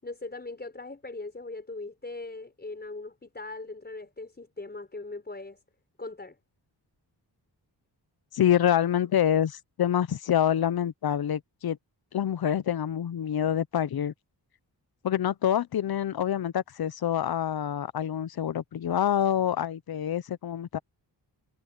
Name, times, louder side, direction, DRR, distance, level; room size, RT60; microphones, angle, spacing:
voice 1, 0.0-5.6 6.0-6.4, left 3 dB, 25° left, 4.8 m, -40 dB
voice 2, 8.3-11.8 12.1-14.1 15.0-20.8, left 10 dB, 60° left, 0.8 m, -26 dB
wide cardioid pair, 115°, 42 cm